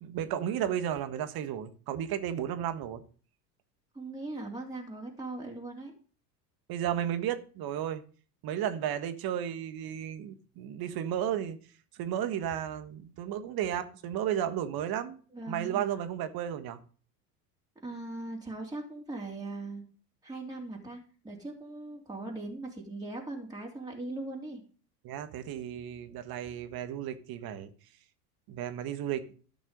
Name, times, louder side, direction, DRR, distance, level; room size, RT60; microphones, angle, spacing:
voice 1, 0.0-3.0 6.7-8.0 8.4-11.6 12.0-15.2 15.5-16.8 25.0-27.7 28.5-29.3, right 10 dB, 50° right, 1.7 m, -33 dB
voice 2, 3.9-5.9 15.3-15.8 17.8-19.8 20.2-24.6, right 2 dB, 10° right, 3.3 m, -40 dB
13.5 x 6.1 x 5.3 m
hypercardioid pair, 85°, 48 cm